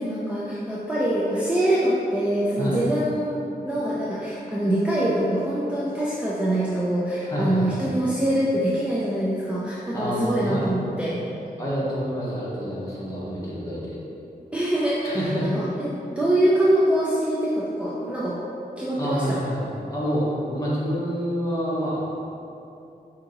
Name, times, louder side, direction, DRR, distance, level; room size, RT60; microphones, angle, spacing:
voice 1, 0.0-11.2 14.5-15.2 15.5-18.4 18.8-19.4, right 1 dB, 5° right, -8 dB, 0.5 m, -24 dB
voice 2, 7.2-7.9 9.9-10.7 11.6-14.0 15.0-15.5 19.0-22.2, equal, 20° left, -8 dB, 1.1 m, -28 dB
4.8 x 2.8 x 3.9 m, 2.8 s
wide cardioid pair, 135°, 16 cm